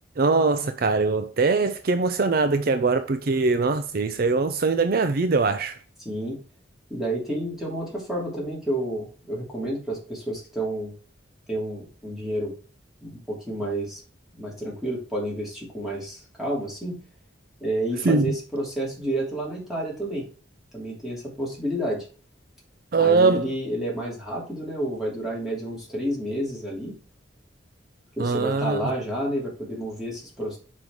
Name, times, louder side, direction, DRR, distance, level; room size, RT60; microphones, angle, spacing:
voice 1, 0.2-5.8 18.0-18.3 22.9-23.4 28.2-28.9, right 4 dB, 50° right, 0.5 m, -22 dB
voice 2, 6.0-6.4 6.9-10.9 11.5-12.5 13.0-14.0 14.3-17.0 17.6-20.3 20.7-22.1 23.0-27.0 28.2-30.6, right 1 dB, ahead, 3.0 m, -30 dB
5.4 x 5.3 x 4.7 m
head